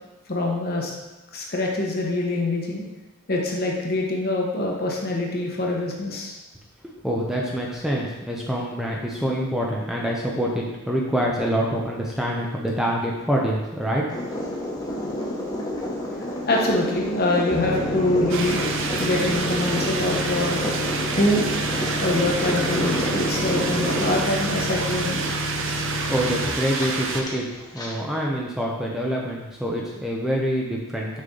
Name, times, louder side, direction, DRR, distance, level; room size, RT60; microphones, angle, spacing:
voice 1, 0.3-0.9 1.3-2.8 3.3-6.4 16.5-18.6 19.0-20.7 21.1-21.5 22.0-25.2, left 2 dB, 45° left, -1 dB, 1.2 m, -24 dB
voice 2, 7.0-14.3 25.9-27.5 27.7-31.2, equal, ahead, -3 dB, 0.6 m, -26 dB
sound 1, 14.1-27.9, left 1 dB, 20° left, 1.2 m, -30 dB
sound 2, 17.5-26.5, equal, 85° left, 2.5 m, -31 dB
sound 3, 18.3-27.2, right 4 dB, 60° right, 0.7 m, -29 dB
6.5 x 5.5 x 3.8 m, 1.1 s
head